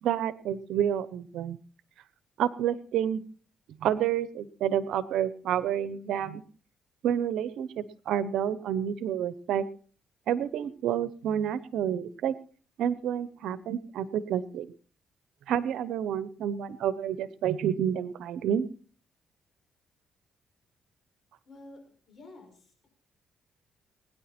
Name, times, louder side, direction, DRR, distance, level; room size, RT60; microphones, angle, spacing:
voice 1, 0.0-1.6 2.4-3.2 3.8-6.4 7.0-9.6 10.3-12.3 12.8-14.7 15.5-18.7, right 9 dB, 80° right, 16 dB, 0.9 m, -29 dB
voice 2, 21.5-21.8 22.1-22.9, left 2 dB, 45° left, 3 dB, 6.2 m, -50 dB
21.0 x 10.0 x 4.4 m, 0.43 s
cardioid pair, 90°, 0 cm